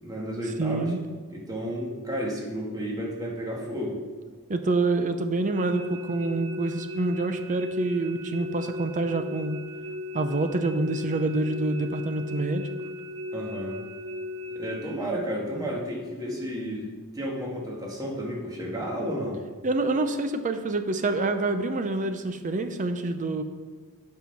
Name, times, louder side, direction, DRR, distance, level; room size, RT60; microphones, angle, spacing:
voice 1, 0.0-0.9 1.3-4.0 13.3-13.8 14.5-16.9 17.1-19.4, equal, 15° right, -2 dB, 1.7 m, -32 dB
voice 2, 0.6-1.0 4.5-9.6 10.1-12.7 15.6-15.7 19.6-23.4, right 2 dB, 35° right, 8 dB, 0.5 m, -27 dB
sound 1, 5.5-15.0, left 2 dB, 65° right, 0.8 m, -37 dB
8.8 x 5.5 x 5.8 m, 1.4 s
head